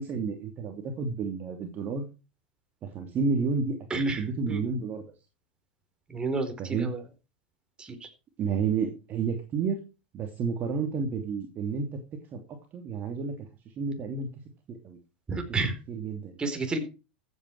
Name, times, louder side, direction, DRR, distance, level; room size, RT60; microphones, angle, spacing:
voice 1, 0.0-2.1 2.8-5.0 6.6-6.9 8.4-9.8 10.1-12.0 12.3-13.5 13.8-14.3 14.7-15.0 15.9-16.4, right 5 dB, 35° right, 4 dB, 2.8 m, -30 dB
voice 2, 6.1-7.0 7.8-8.1 15.3-15.7 16.4-16.8, right 3 dB, 15° right, 6 dB, 4.3 m, -31 dB
14.5 x 8.9 x 4.8 m, 0.31 s
hypercardioid pair, 110°, 5 cm